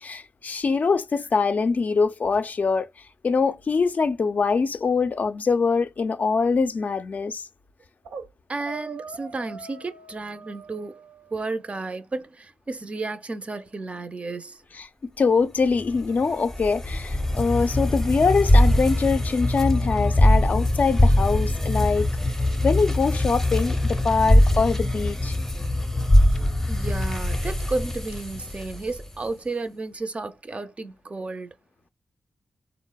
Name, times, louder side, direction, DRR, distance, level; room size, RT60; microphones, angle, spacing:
voice 1, 0.0-2.9 3.2-7.5 14.7-14.9 15.2-22.1 22.6-25.3, left 4 dB, 50° left, 0.3 m, -23 dB
sound 1, 7.8-8.3 8.6-11.4, right 4 dB, 85° right, 0.5 m, -41 dB
voice 2, 8.5-11.0 11.3-14.6 26.7-31.5, right 3 dB, 35° right, 0.5 m, -32 dB
sound 2, 15.7-29.1, left 1 dB, 15° left, 0.6 m, -22 dB
3.7 x 2.0 x 2.2 m
cardioid pair, 55°, 3 cm